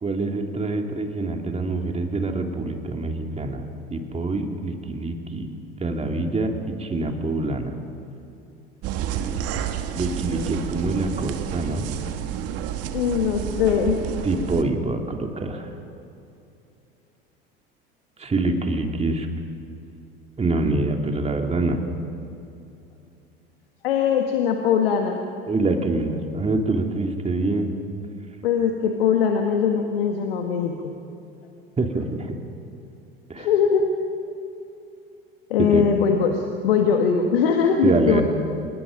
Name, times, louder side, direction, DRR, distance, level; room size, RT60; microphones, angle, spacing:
voice 1, 0.0-3.6 3.9-5.5 5.8-7.8 9.0-9.4 9.9-11.9 14.2-15.7 18.2-19.3 20.4-21.8 25.5-27.7 31.8-32.3 33.3-33.5 35.7-35.8 37.8-38.2, right 2 dB, 20° right, 3 dB, 2.8 m, -25 dB
sound 1, 8.8-14.6, right 9 dB, 55° right, 1.7 m, -30 dB
voice 2, 12.9-14.0 23.8-25.2 28.4-30.9 33.4-33.9 35.5-38.2, left 7 dB, 75° left, 3 dB, 1.6 m, -21 dB
26.5 x 20.5 x 5.3 m, 2.7 s
hypercardioid pair, 70°, 29 cm